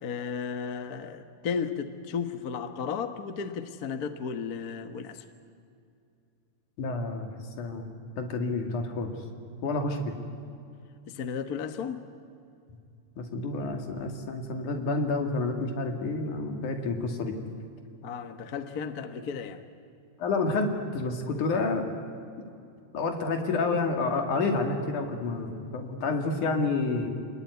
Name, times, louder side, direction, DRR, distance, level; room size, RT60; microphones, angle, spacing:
voice 1, 0.0-5.2 11.1-12.0 18.0-19.6, left 6 dB, 45° left, 8 dB, 1.2 m, -34 dB
voice 2, 6.8-7.3 7.6-9.1 9.6-10.1 13.2-17.3 20.2-22.0 22.9-27.1, left 3 dB, 85° left, 4 dB, 3.9 m, -29 dB
28.0 x 20.5 x 9.6 m, 2.5 s
omnidirectional pair, 3.4 m